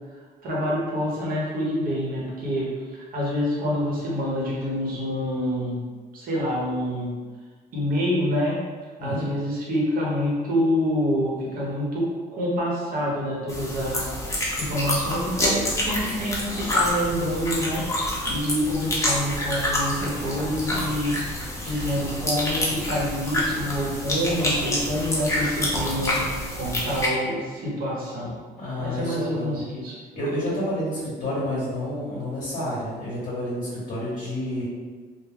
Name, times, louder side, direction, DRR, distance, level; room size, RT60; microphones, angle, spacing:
voice 1, 0.4-2.7 3.1-5.8 6.1-7.1 7.7-8.5 9.0-14.1 14.3-26.2 26.5-28.3 28.8-30.0, equal, 55° right, -5 dB, 1.0 m, -27 dB
sound 1, 13.5-27.1, left 1 dB, 20° left, 0.6 m, -27 dB
voice 2, 28.6-29.6 30.1-34.6, left 1 dB, 45° left, -8 dB, 0.8 m, -29 dB
2.3 x 2.1 x 3.3 m, 1.5 s
cardioid pair, 110°, 17 cm